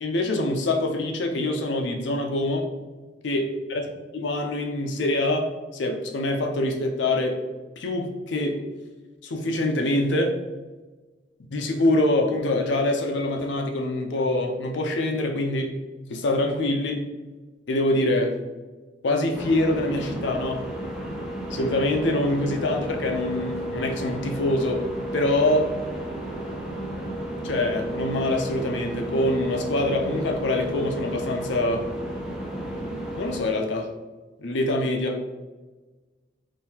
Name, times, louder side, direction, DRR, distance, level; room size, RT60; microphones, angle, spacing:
voice 1, 0.0-2.7 3.2-3.8 4.1-7.4 7.8-8.7 9.2-10.4 11.5-15.7 16.1-17.0 17.7-18.4 19.0-20.6 21.5-24.9 25.1-25.7 27.4-31.9 33.2-33.9 34.4-35.2, left 1 dB, 75° left, 4 dB, 0.5 m, -25 dB
sound 1, 19.3-33.4, right 1 dB, 5° right, 0.4 m, -32 dB
3.7 x 2.6 x 2.8 m, 1.3 s
head